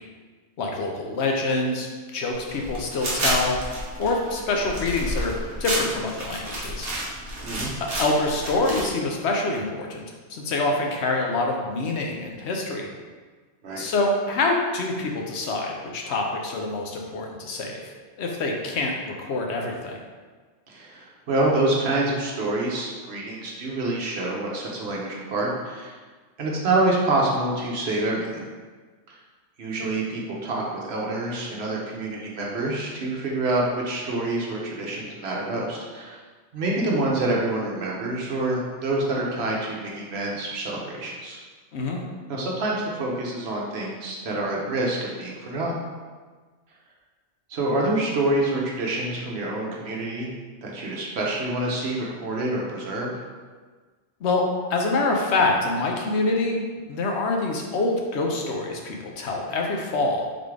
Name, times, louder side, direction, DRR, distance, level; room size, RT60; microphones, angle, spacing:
voice 1, 0.6-3.5 4.0-5.3 5.6-6.9 7.8-10.0 10.3-12.9 13.8-17.8 18.2-20.0 41.7-42.0 54.2-54.4 54.7-60.3, left 2 dB, 70° left, 1 dB, 0.8 m, -26 dB
sound 1, 2.3-8.8, right 1 dB, 35° right, 1.0 m, -30 dB
voice 2, 20.7-25.9 26.4-28.4 29.6-36.2 36.5-41.4 42.3-45.8 47.5-50.3 50.6-53.1, right 2 dB, 60° right, -3 dB, 1.0 m, -27 dB
4.0 x 3.5 x 3.2 m, 1.4 s
omnidirectional pair, 1.3 m